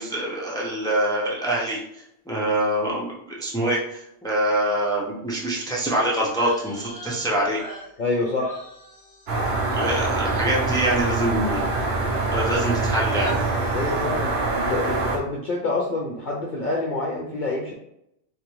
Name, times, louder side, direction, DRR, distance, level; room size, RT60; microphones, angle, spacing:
voice 1, 0.0-1.8 2.3-7.6 9.7-11.7 12.3-13.4, right 1 dB, 5° left, -4 dB, 0.7 m, -25 dB
sound 1, 6.3-11.9 12.1-12.8 13.1-13.4, equal, 30° left, 1.4 m, -42 dB
voice 2, 8.0-8.6 13.7-17.7, left 2 dB, 50° left, -2 dB, 0.7 m, -27 dB
sound 2, 9.3-15.2, right 3 dB, 65° right, 1.0 m, -24 dB
3.6 x 3.2 x 3.1 m, 0.78 s
omnidirectional pair, 1.2 m